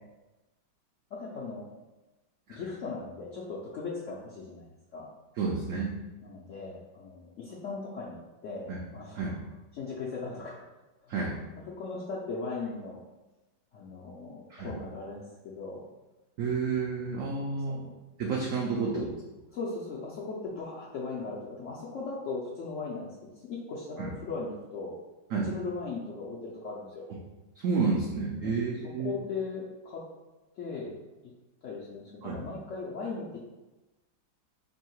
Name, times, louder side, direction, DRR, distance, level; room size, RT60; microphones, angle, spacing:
voice 1, 1.1-1.7 2.5-5.1 6.2-9.4 9.7-10.6 11.0-11.2 11.6-13.0 13.7-15.8 17.5-17.9 18.9-19.1 19.5-24.9 25.4-27.1 28.4-28.6 28.8-30.0 30.6-30.9 31.6-33.4, left 4 dB, 80° left, -5 dB, 0.6 m, -38 dB
voice 2, 5.4-5.9 8.7-8.8 9.1-9.3 11.1-11.4 14.5-14.7 16.4-17.8 18.2-19.1 24.0-24.1 25.3-25.5 27.6-29.1 32.2-32.4, right 4 dB, 90° right, -3 dB, 0.7 m, -30 dB
3.1 x 2.7 x 4.4 m, 1.1 s
omnidirectional pair, 2.0 m